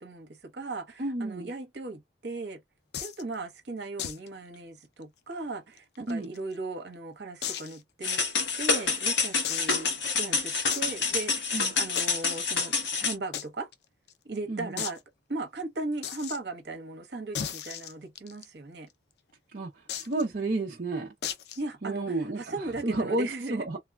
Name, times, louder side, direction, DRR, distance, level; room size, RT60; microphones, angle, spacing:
voice 1, 0.0-2.6 3.0-8.2 8.6-9.9 10.2-13.7 14.2-15.0 15.3-18.9 21.6-23.7, right 2 dB, 70° right, 0.9 m, -37 dB
voice 2, 1.0-1.5 6.1-6.3 11.5-11.8 14.5-14.8 19.5-21.1 21.8-23.8, right 2 dB, 50° right, 0.6 m, -31 dB
sound 1, 2.9-3.2 4.0-4.3 4.5-4.6 5.0-5.1 5.8-6.6 7.4-7.8 8.3-8.4 9.4-9.9 10.7-10.9 12.0-12.4 13.3-13.5 13.7-13.8 14.1-14.2 14.8-15.0 16.0-16.4 17.3-18.4 19.9-20.2 21.2-21.6, left 9 dB, 65° left, 0.4 m, -35 dB
sound 2, 8.0-13.1, left 4 dB, 90° left, 1.1 m, -28 dB
3.1 x 2.1 x 2.2 m
head